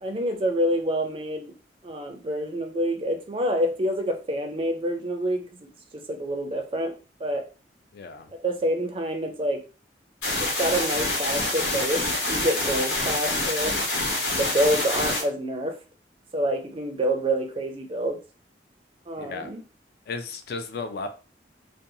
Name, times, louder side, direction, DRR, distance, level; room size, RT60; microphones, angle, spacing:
voice 1, 0.0-1.5 1.8-6.9 7.2-7.5 8.4-9.6 10.4-13.7 14.3-15.8 16.3-18.2 19.1-19.6, right 1 dB, 30° right, 0.4 m, -27 dB
voice 2, 7.9-8.3 19.2-19.5 20.1-21.1, left 4 dB, 60° left, 0.4 m, -34 dB
sound 1, 10.2-15.2, left 2 dB, 75° left, 1.0 m, -26 dB
2.6 x 2.2 x 2.6 m
head